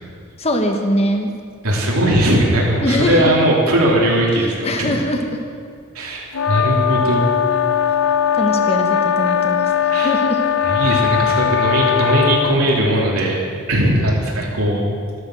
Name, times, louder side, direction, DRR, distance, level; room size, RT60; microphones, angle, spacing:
voice 1, 0.4-1.3 2.8-3.5 4.6-5.4 6.5-6.7 8.3-9.6 10.0-10.4, equal, 30° left, 3 dB, 1.3 m, -21 dB
voice 2, 1.6-4.9 5.9-7.2 9.9-10.1 10.6-13.4 13.7-14.8, right 1 dB, 90° right, -3 dB, 3.3 m, -18 dB
sound 1, 6.3-12.6, left 8 dB, 75° left, 0.7 m, -19 dB
13.5 x 13.0 x 6.3 m, 2.2 s
head